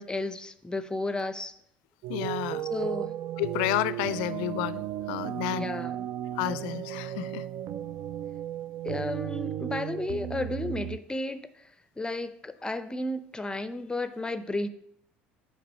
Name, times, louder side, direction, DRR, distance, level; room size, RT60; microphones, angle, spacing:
voice 1, 0.0-1.5 2.7-3.2 5.5-6.1 8.8-14.7, left 2 dB, 15° left, 13 dB, 0.5 m, -33 dB
sound 1, 2.0-11.0, right 12 dB, 55° right, 0.4 m, -35 dB
voice 2, 2.1-2.7 3.4-5.7 6.3-7.5, left 14 dB, 70° left, 17 dB, 0.4 m, -31 dB
6.7 x 4.9 x 5.4 m, 0.69 s
hypercardioid pair, 65°, 6 cm